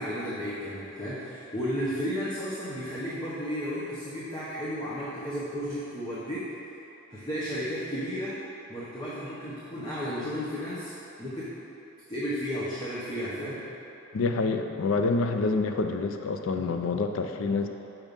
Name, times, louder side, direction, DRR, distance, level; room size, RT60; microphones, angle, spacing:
voice 1, 0.0-6.5 7.1-8.4 8.7-10.9 11.2-11.5 12.1-13.6, equal, 20° left, -9 dB, 0.9 m, -33 dB
voice 2, 14.1-17.7, left 3 dB, 65° left, 6 dB, 0.4 m, -27 dB
6.0 x 5.4 x 5.2 m, 2.9 s
head